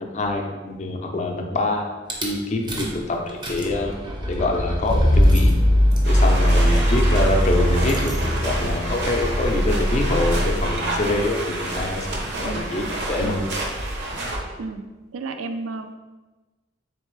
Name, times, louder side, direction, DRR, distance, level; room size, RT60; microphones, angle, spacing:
voice 1, 0.0-1.9 2.2-4.0 4.3-5.5 6.1-13.4, left 2 dB, 35° left, 2 dB, 0.5 m, -25 dB
Rattle / Car / Engine starting, 2.1-2.3 2.7-3.0 3.3-11.0, equal, 25° right, 0.6 m, -20 dB
sound 1, 6.0-14.4, right 1 dB, 60° right, 0.7 m, -29 dB
voice 2, 12.3-12.7 13.2-13.5 14.6-14.8 15.1-15.9, right 3 dB, 80° right, 7 dB, 0.4 m, -33 dB
3.6 x 3.3 x 3.1 m, 1.2 s
head